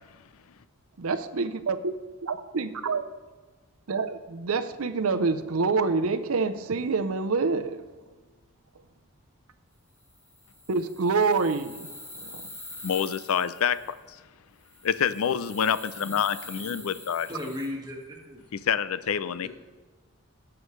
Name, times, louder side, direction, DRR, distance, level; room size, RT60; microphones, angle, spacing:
voice 1, 1.0-1.9 2.2-3.1 3.9-7.8 10.7-12.5, right 4 dB, 90° right, 0.7 m, -27 dB
sound 1, 10.0-14.0 14.6-17.7, left 1 dB, 10° left, 1.2 m, -45 dB
voice 2, 12.8-14.0 14.8-17.3 18.5-19.5, left 8 dB, 85° left, 0.5 m, -27 dB
voice 3, 17.3-18.4 19.4-19.5, left 1 dB, 20° right, 1.7 m, -36 dB
17.5 x 7.1 x 3.2 m
head